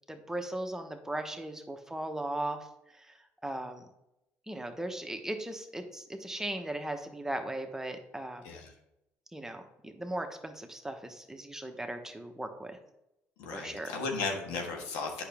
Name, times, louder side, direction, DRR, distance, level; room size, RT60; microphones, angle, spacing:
voice 1, 0.1-2.7 2.9-3.1 3.4-3.9 4.5-8.4 9.3-12.8 13.5-13.9, right 1 dB, 10° right, 5 dB, 1.1 m, -37 dB
voice 2, 13.4-15.2, left 4 dB, 90° left, 1 dB, 1.6 m, -35 dB
8.3 x 5.9 x 3.5 m, 0.87 s
supercardioid pair, 80°, 6 cm